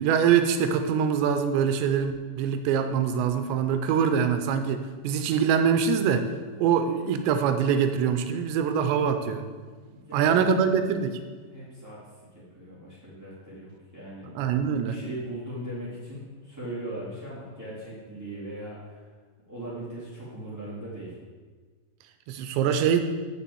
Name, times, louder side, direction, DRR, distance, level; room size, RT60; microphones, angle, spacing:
voice 1, 0.0-6.3 6.6-9.4 10.1-11.2 14.4-15.0 22.3-23.0, right 7 dB, 80° right, 8 dB, 2.8 m, -24 dB
voice 2, 9.9-10.5 11.5-12.0 12.3-14.4 14.7-19.1 19.5-21.2, right 1 dB, 10° right, -10 dB, 0.9 m, -39 dB
7.1 x 6.9 x 7.6 m, 1.5 s
omnidirectional pair, 5.2 m